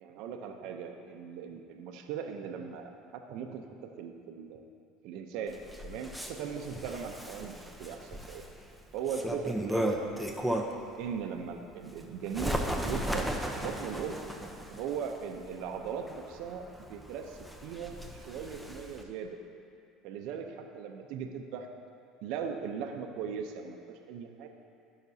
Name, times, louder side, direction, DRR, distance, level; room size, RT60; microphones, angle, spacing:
voice 1, 0.0-2.9 3.3-3.6 4.0-4.6 5.0-5.6 5.8-8.4 8.9-10.0 11.0-13.3 13.5-14.2 14.7-16.6 16.9-19.4 20.0-21.7 22.2-24.5, right 7 dB, 70° right, 4 dB, 0.7 m, -39 dB
Bird, 5.5-10.9 11.4-19.0, right 1 dB, ahead, 0.8 m, -36 dB
15.0 x 6.0 x 2.8 m, 2.4 s
supercardioid pair, 90°, 0 cm